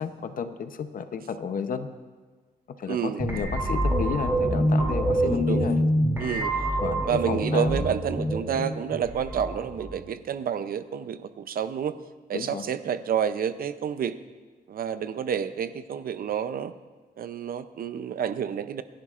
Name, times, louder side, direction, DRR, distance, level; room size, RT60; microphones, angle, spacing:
voice 1, 0.0-1.9 2.8-5.8 6.8-7.9 12.3-12.6, left 6 dB, 55° left, 9 dB, 0.7 m, -32 dB
voice 2, 2.9-3.3 5.2-5.7 6.2-6.7 7.0-11.9 12.3-14.2 14.7-16.7 17.2-18.8, right 8 dB, 60° right, 12 dB, 0.5 m, -29 dB
sound 1, 3.2-10.1, right 1 dB, 15° right, 2.6 m, -26 dB
27.0 x 11.0 x 2.4 m, 1.4 s
wide cardioid pair, 175°, 17 cm